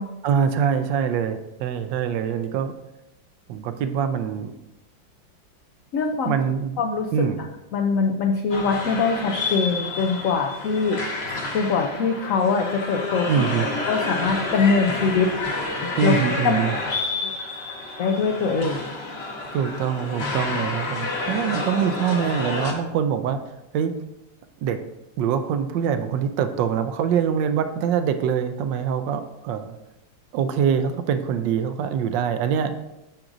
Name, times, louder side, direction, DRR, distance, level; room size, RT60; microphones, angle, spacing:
voice 1, 0.2-2.7 3.5-4.5 6.2-6.8 7.1-7.4 13.3-13.7 16.0-16.7 19.5-23.4 23.7-23.9 24.6-24.8 25.2-29.8 30.3-32.7, right 7 dB, 75° right, 9 dB, 1.2 m, -24 dB
voice 2, 5.9-6.4 6.8-7.2 7.7-11.0 11.2-13.3 13.9-15.3 15.8-16.2 16.4-16.7 18.0-18.8, left 4 dB, 80° left, 3 dB, 0.7 m, -23 dB
sound 1, 8.5-22.7, left 3 dB, 40° left, 1.0 m, -29 dB
8.8 x 6.0 x 2.6 m, 0.93 s
omnidirectional pair, 2.1 m